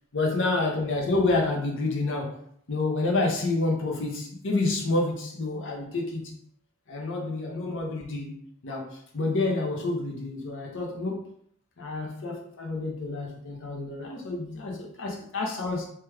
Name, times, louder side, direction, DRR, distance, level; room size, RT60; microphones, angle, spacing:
voice 1, 0.1-2.4 2.7-6.3 6.9-8.4 8.6-11.3 11.8-15.9, left 2 dB, 60° left, 0 dB, 0.7 m, -28 dB
3.0 x 2.3 x 3.3 m, 0.66 s
head